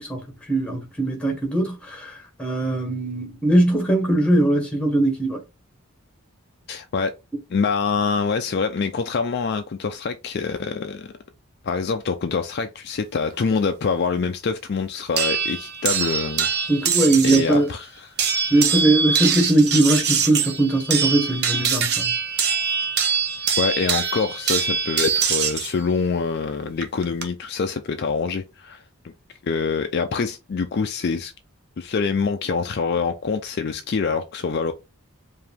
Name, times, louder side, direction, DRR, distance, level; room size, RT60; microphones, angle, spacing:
voice 1, 0.0-5.4 16.7-17.7 18.5-22.1, right 1 dB, 5° left, 1.2 m, -20 dB
voice 2, 6.7-7.1 7.5-11.1 11.6-16.5 17.2-18.2 23.6-28.8 29.4-31.3 31.8-34.7, left 5 dB, 45° left, 0.4 m, -25 dB
sound 1, 15.2-17.5 18.2-25.7 26.8-27.2, right 6 dB, 45° right, 0.7 m, -23 dB
4.7 x 2.6 x 3.5 m
head